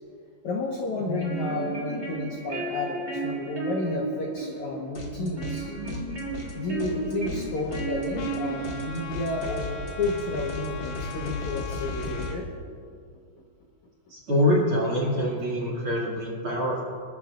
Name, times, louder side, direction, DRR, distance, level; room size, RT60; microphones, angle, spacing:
voice 1, 0.4-5.7 6.6-12.5, left 3 dB, 60° left, -2 dB, 2.1 m, -31 dB
sound 1, 1.0-9.0, right 4 dB, 20° right, 2.6 m, -34 dB
sound 2, 4.9-5.6 5.9-12.3, left 2 dB, 45° left, 1.6 m, -36 dB
Trumpet, 8.2-12.4, left 6 dB, 90° left, 3.0 m, -41 dB
voice 2, 14.1-16.8, left 1 dB, 40° right, -5 dB, 2.4 m, -25 dB
26.5 x 13.5 x 2.5 m, 2.2 s
omnidirectional pair, 4.7 m